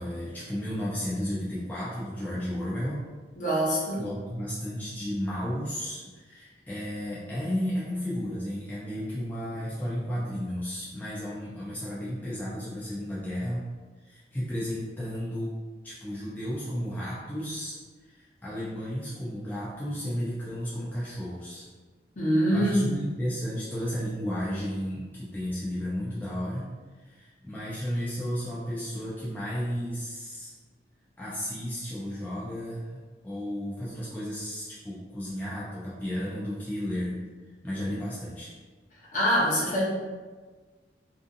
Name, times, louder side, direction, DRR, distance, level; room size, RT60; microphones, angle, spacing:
voice 1, 0.0-3.2 4.0-13.6 14.0-15.6 15.8-21.7 22.5-26.7 27.0-30.5 31.2-37.2 37.6-38.5, equal, 10° left, -8 dB, 0.3 m, -33 dB
voice 2, 3.3-4.0 22.2-23.0 39.1-39.8, equal, 45° left, -6 dB, 0.7 m, -24 dB
2.5 x 2.4 x 2.5 m, 1.4 s
head